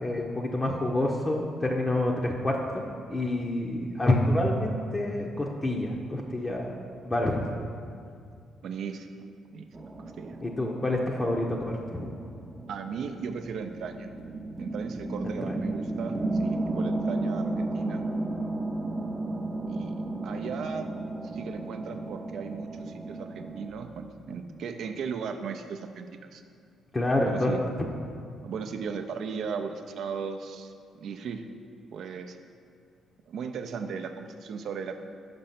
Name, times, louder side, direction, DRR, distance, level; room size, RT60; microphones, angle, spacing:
voice 1, 0.0-6.7 7.0-7.5 10.4-12.1 15.2-15.5 26.9-27.5, left 1 dB, 20° left, -1 dB, 0.6 m, -28 dB
voice 2, 8.6-9.2 9.5-10.4 12.7-14.1 14.6-18.1 19.7-20.9 21.3-26.4 27.3-27.6 28.4-31.4 31.9-32.4 33.3-35.0, right 6 dB, 70° right, 6 dB, 0.5 m, -37 dB
sound 1, 9.7-23.7, right 2 dB, 20° right, 0.6 m, -34 dB
5.3 x 5.3 x 5.7 m, 2.3 s
cardioid pair, 90°, 0 cm